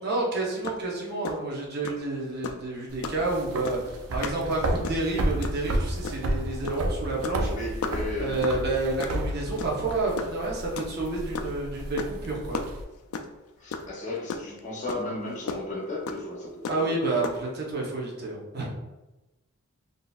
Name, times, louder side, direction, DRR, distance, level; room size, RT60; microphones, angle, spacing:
voice 1, 0.0-7.5 8.2-12.6 16.7-18.7, right 2 dB, 45° right, -3 dB, 0.8 m, -29 dB
sound 1, 0.6-0.8 1.1-1.3 1.8-2.0 2.4-2.6 3.0-3.2 3.6-3.9 4.2-4.4 4.7-5.1 5.4-5.6 6.0-6.3 6.6-6.8 7.1-7.4 7.8-8.0 8.4-8.6 9.0-9.2 9.6-9.9 10.2-11.5 12.0-12.3 12.5-13.4 13.7-13.9 14.2-14.6 14.9-15.0 15.5-15.6 16.1-16.2 16.6-16.9 17.2-17.4, left 5 dB, 80° left, 0.3 m, -33 dB
sound 2, 2.9-12.8, right 1 dB, 85° right, 0.4 m, -32 dB
voice 2, 7.5-8.4 13.6-17.0, left 2 dB, 35° left, -3 dB, 0.7 m, -34 dB
3.8 x 2.6 x 2.3 m, 1.0 s
head